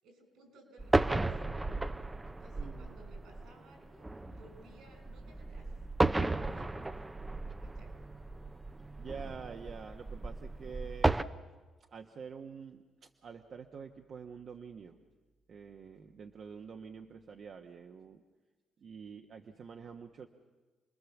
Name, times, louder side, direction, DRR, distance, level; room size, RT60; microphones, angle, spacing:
voice 1, 0.0-5.7 6.2-6.9 7.6-7.9, right 1 dB, 80° right, 5 dB, 6.5 m, -59 dB
sound 1, 0.8-11.2, right 2 dB, 15° right, 0.7 m, -34 dB
voice 2, 2.6-2.9 9.0-11.2 11.9-15.0 15.5-18.2 18.8-20.3, right 6 dB, 55° right, 4 dB, 1.2 m, -47 dB
28.0 x 20.5 x 7.2 m, 1.3 s
cardioid pair, 90°, 0 cm